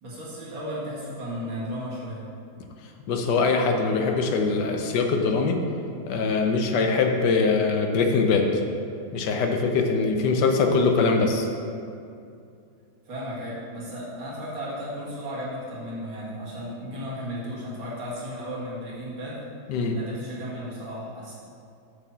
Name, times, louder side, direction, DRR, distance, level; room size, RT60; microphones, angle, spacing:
voice 1, 0.0-2.2 6.4-6.6 13.1-19.4 19.9-21.4, equal, 70° right, -7 dB, 2.7 m, -35 dB
voice 2, 3.1-5.6 6.1-8.6 9.1-11.5 19.7-20.0, left 4 dB, 65° left, 3 dB, 1.2 m, -22 dB
7.2 x 4.5 x 6.8 m, 2.5 s
omnidirectional pair, 2.2 m